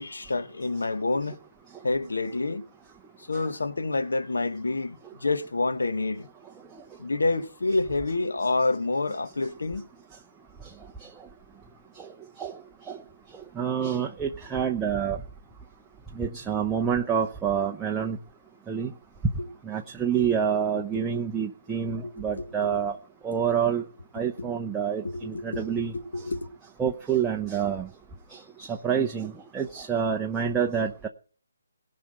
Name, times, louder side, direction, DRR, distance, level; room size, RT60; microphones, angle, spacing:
voice 1, 0.0-1.4 1.8-2.6 3.3-6.3 7.0-9.8 19.4-19.5 20.7-21.1 21.9-22.8 24.4-24.5 25.0-25.7 25.9-26.5, left 3 dB, 85° left, 1.4 m, -28 dB
voice 2, 13.6-15.2 16.2-18.2 18.7-18.9 19.7-23.0 23.2-23.8 24.1-25.9 26.8-27.9 28.6-31.1, right 7 dB, 10° right, 0.7 m, -27 dB
17.5 x 5.9 x 7.8 m
hypercardioid pair, 160°, 0 cm